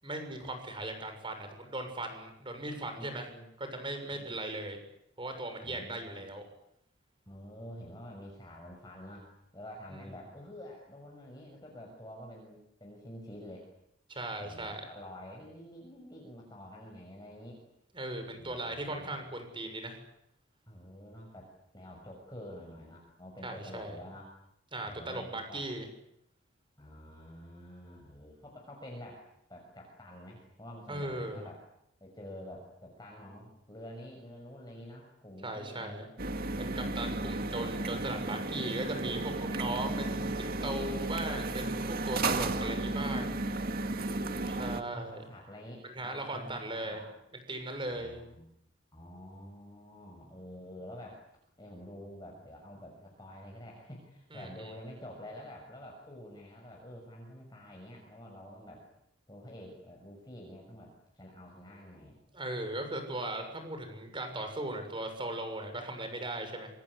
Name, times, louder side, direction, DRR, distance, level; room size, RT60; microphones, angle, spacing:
voice 1, 0.0-3.3 3.6-4.8 5.2-6.4 9.9-10.0 14.1-14.8 17.9-20.0 23.4-23.9 24.7-25.9 30.9-31.5 35.4-36.1 36.6-43.4 44.4-45.2 45.8-47.0 47.5-48.2 54.3-54.7 62.3-66.7, right 1 dB, 25° right, 7 dB, 6.9 m, -38 dB
voice 2, 2.6-3.5 4.1-4.4 5.6-6.3 7.3-13.7 14.4-17.6 18.3-19.2 20.7-24.3 24.8-25.7 26.8-31.5 32.0-36.1 44.4-47.1 47.8-48.5 48.9-51.2 51.6-58.9 59.3-62.2, equal, 20° left, -1 dB, 6.5 m, -48 dB
sound 1, 36.2-44.8, right 2 dB, 50° right, 2.2 m, -34 dB
27.0 x 25.5 x 8.3 m, 0.78 s
head